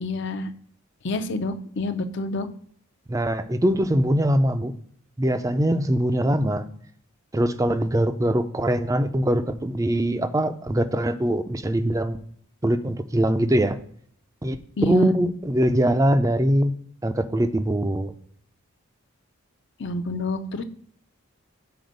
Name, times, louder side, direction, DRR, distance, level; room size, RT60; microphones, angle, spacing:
voice 1, 0.0-0.5 1.0-2.5 14.8-15.1 19.8-20.6, left 2 dB, 55° left, 9 dB, 0.6 m, -28 dB
voice 2, 3.1-4.7 5.2-6.6 7.3-12.2 12.6-13.8 14.4-14.6 14.9-16.7 17.0-18.1, right 1 dB, 15° right, 10 dB, 0.4 m, -22 dB
7.7 x 4.3 x 5.2 m, 0.64 s
head